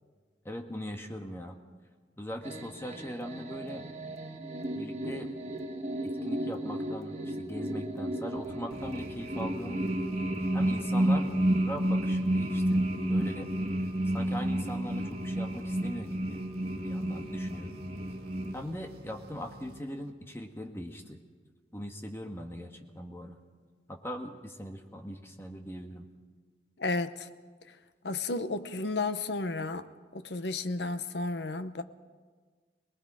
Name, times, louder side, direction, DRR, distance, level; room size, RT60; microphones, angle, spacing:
voice 1, 0.4-1.6 2.2-3.8 4.7-5.3 6.0-9.8 10.5-11.3 11.6-13.5 14.1-16.4 16.8-17.8 18.5-21.2 21.7-23.4 23.9-26.1, equal, 15° left, 1.5 m, -40 dB
sound 1, 2.4-18.5, right 1 dB, 35° right, 1.5 m, -31 dB
sound 2, 8.7-20.4, right 1 dB, 65° right, 2.0 m, -50 dB
voice 2, 26.8-27.3 28.0-31.8, left 3 dB, 75° left, 0.9 m, -33 dB
27.0 x 19.5 x 5.0 m
head